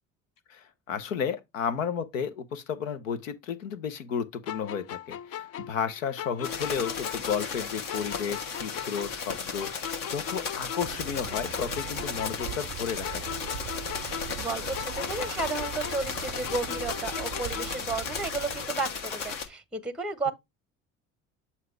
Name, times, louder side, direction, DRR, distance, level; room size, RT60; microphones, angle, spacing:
voice 1, 0.5-13.4, left 7 dB, 85° left, 0.8 m, -33 dB
sound 1, 4.5-7.6 7.9-11.0 11.3-14.5 14.7-17.9, left 10 dB, 40° left, 0.4 m, -39 dB
sound 2, 6.4-19.5, left 5 dB, 60° left, 1.3 m, -35 dB
sound 3, 10.8-18.7, right 17 dB, 45° right, 0.4 m, -41 dB
voice 2, 14.0-20.3, right 3 dB, ahead, 0.7 m, -33 dB
7.5 x 2.8 x 4.6 m
hypercardioid pair, 60°, 38 cm